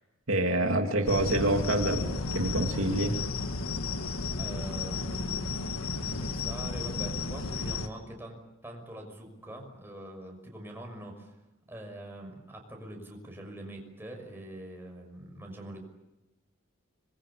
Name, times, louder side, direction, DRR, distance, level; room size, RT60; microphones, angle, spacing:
voice 1, 0.3-3.2, right 1 dB, 75° right, 3 dB, 2.7 m, -27 dB
sound 1, 1.1-7.9, left 3 dB, 90° left, 1.7 m, -33 dB
voice 2, 4.4-5.7 6.0-11.4 11.7-15.8, right 1 dB, 10° right, 1 dB, 6.0 m, -44 dB
26.0 x 22.0 x 8.6 m, 0.99 s
head